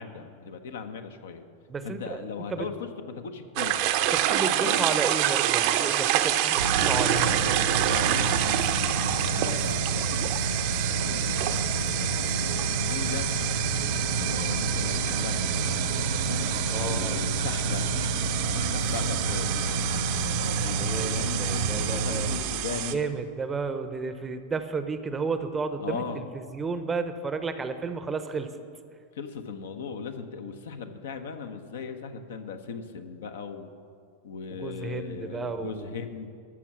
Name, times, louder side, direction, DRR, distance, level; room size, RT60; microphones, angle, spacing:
voice 1, 0.0-1.4 1.8-4.9 7.2-10.4 11.0-13.3 14.2-15.9 16.8-17.9 18.5-20.0 20.6-23.0 25.8-26.2 29.1-33.7 34.2-36.3, left 6 dB, 60° left, 7 dB, 0.8 m, -38 dB
voice 2, 1.7-2.2 2.5-2.7 4.1-7.4 13.8-14.0 16.7-17.2 20.8-22.3 22.9-28.5 34.5-36.0, right 4 dB, 15° right, 10 dB, 0.7 m, -32 dB
sound 1, 3.6-22.9, right 12 dB, 45° right, 0.6 m, -28 dB
sound 2, 6.6-22.4, right 2 dB, 70° right, 0.9 m, -30 dB
13.0 x 6.2 x 7.2 m, 2.3 s
figure-of-eight pair, 90°, 0 cm